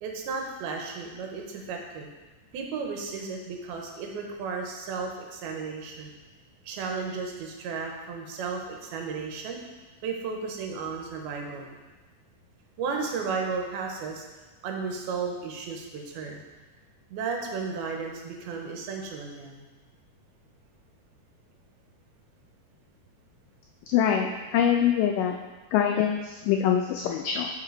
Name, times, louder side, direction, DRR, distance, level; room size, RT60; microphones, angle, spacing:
voice 1, 0.0-2.1 2.5-6.1 6.6-9.6 10.0-11.8 12.8-14.2 14.6-16.4 17.1-19.6, right 5 dB, 90° right, 1 dB, 2.8 m, -34 dB
voice 2, 23.9-25.3 25.7-27.5, left 9 dB, 90° left, 3 dB, 1.9 m, -24 dB
7.5 x 6.4 x 3.8 m, 1.2 s
omnidirectional pair, 4.4 m